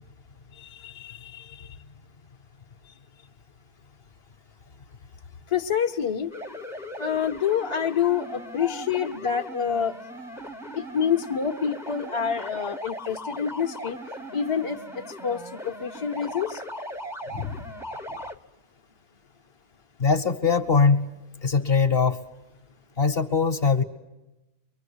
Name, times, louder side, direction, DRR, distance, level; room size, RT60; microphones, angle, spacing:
voice 1, 0.6-1.7 5.5-6.3 7.0-10.0 10.7-14.0 14.3-14.8 15.2-16.6, left 7 dB, 25° left, 3 dB, 0.8 m, -27 dB
sound 1, 6.3-18.4, equal, ahead, 0.7 m, -39 dB
voice 2, 17.3-17.6 18.1-18.2 20.0-21.1 21.4-22.2 23.0-23.8, left 5 dB, 45° left, 6 dB, 1.2 m, -22 dB
24.5 x 23.0 x 8.6 m, 1.0 s
omnidirectional pair, 1.6 m